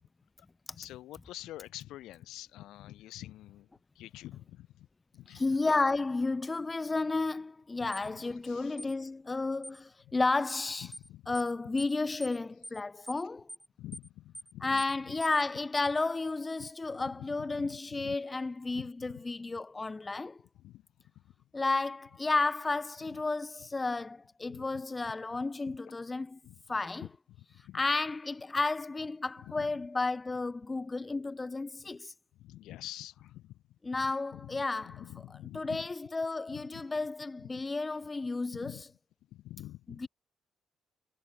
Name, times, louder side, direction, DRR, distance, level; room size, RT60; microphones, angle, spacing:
voice 1, 0.7-3.7 3.9-4.9 5.1-5.6 7.8-8.8 10.0-10.2 10.8-11.3 13.8-15.2 16.6-18.2 18.7-19.2 20.5-21.3 23.0-23.2 24.5-24.8 25.6-25.8 26.4-26.6 27.0-27.8 29.4-29.8 31.8-31.9 32.3-35.9 36.5-36.8 37.4-37.6 38.5-38.8 39.3-40.1, left 15 dB, 90° left, 3.4 m, -48 dB
voice 2, 5.3-10.9 11.3-13.5 14.6-20.4 21.5-26.4 26.7-27.0 27.7-32.1 33.9-34.9 35.5-38.7 40.0-40.1, left 3 dB, 25° left, 0.4 m, -32 dB
sound 1, 7.9-8.1 8.8-8.9 9.6-9.8 10.5-10.7 10.9-11.1 11.3-11.5 11.8-11.9 12.2-12.4 12.6-12.8 13.1-13.2 13.5-13.7 13.9-14.1 14.3-14.5 14.8-14.9 15.2-15.4, equal, 5° right, 0.9 m, -45 dB
cardioid pair, 90°, 0 cm